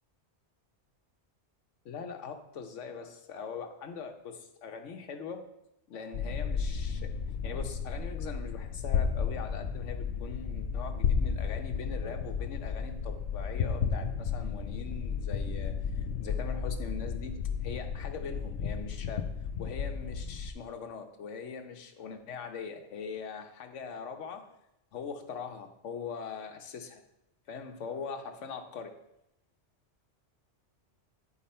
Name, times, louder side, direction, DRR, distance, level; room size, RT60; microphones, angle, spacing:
voice 1, 1.8-5.4 5.9-7.1 7.4-17.3 17.6-19.3 19.6-24.4 24.9-27.0 27.5-28.9, left 6 dB, 85° left, 6 dB, 1.2 m, -41 dB
sound 1, 6.1-20.5, left 6 dB, 70° left, 0.9 m, -33 dB
10.5 x 4.6 x 4.3 m, 0.82 s
omnidirectional pair, 1.2 m